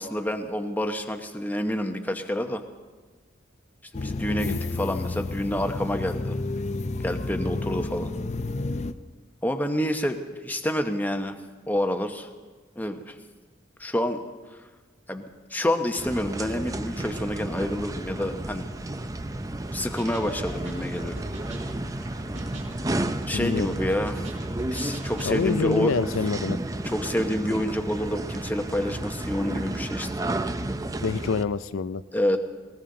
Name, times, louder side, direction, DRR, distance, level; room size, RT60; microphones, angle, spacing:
voice 1, 0.0-2.6 3.9-6.4 7.0-8.1 9.4-11.3 11.7-12.3 12.8-13.2 13.8-14.2 15.1-18.7 19.7-21.2 23.3-24.2 24.6-25.9 26.8-30.1 32.1-32.4, equal, 10° left, 6 dB, 0.8 m, -28 dB
sound 1, 3.9-8.9, left 2 dB, 35° left, 0.5 m, -31 dB
voice 2, 4.3-4.6 23.3-23.7 25.3-26.6 31.0-32.0, left 5 dB, 85° left, 13 dB, 0.5 m, -26 dB
sound 2, 16.0-31.4, right 1 dB, 15° right, 0.5 m, -32 dB
sound 3, 20.0-25.4, right 1 dB, 75° right, 5.0 m, -42 dB
19.5 x 19.0 x 3.8 m, 1.4 s
head